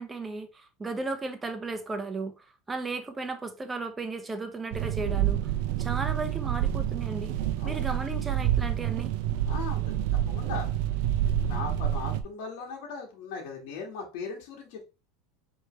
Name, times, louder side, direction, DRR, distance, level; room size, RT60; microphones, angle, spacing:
voice 1, 0.0-5.5 5.8-7.3 7.6-9.1, right 3 dB, 15° right, 0.9 m, -35 dB
sound 1, 4.7-12.2, right 11 dB, 70° right, 0.6 m, -28 dB
voice 2, 9.5-10.7 11.2-14.9, left 4 dB, 70° left, 1.6 m, -39 dB
4.6 x 3.3 x 3.3 m
supercardioid pair, 110°, 0 cm